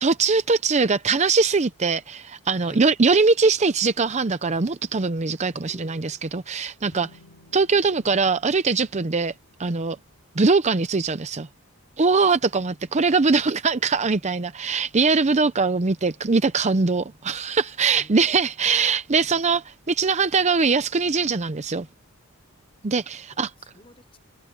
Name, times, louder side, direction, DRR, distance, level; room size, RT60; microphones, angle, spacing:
voice 1, 0.0-7.1 7.5-9.3 9.6-10.0 10.4-11.5 12.0-21.9 22.8-23.5, right 4 dB, 30° right, 0.6 m, -22 dB
voice 2, 2.6-2.9 5.5-6.2 18.0-18.4 23.3-24.2, left 1 dB, 25° left, 6.1 m, -49 dB
sound 1, 6.9-10.5, left 2 dB, 65° left, 3.0 m, -56 dB
head